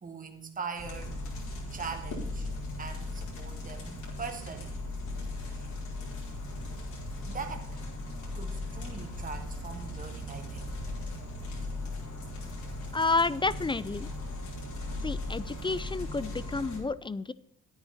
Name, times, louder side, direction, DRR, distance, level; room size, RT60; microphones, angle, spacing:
voice 1, 0.0-1.2 1.7-2.5 2.8-4.7 5.5-5.7 7.3-7.7 8.3-10.6, right 5 dB, 25° right, 4 dB, 1.5 m, -41 dB
sound 1, 0.8-16.8, left 1 dB, 75° left, 4.7 m, -38 dB
voice 2, 12.9-14.1 15.0-17.3, left 3 dB, 15° left, 18 dB, 0.4 m, -30 dB
9.8 x 9.5 x 4.3 m, 0.72 s
cardioid pair, 90°, 30 cm